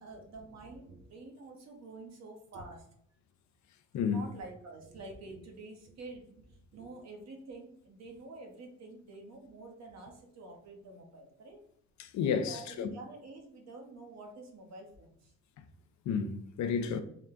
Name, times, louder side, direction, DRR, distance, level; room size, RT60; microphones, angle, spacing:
voice 1, 0.0-2.9 4.0-11.6 12.2-15.3, right 2 dB, 60° right, 1.0 m, -48 dB
voice 2, 3.9-4.2 12.0-12.9 16.1-17.0, left 6 dB, 70° left, 0.5 m, -31 dB
3.7 x 2.2 x 3.7 m
cardioid pair, 90°, 30 cm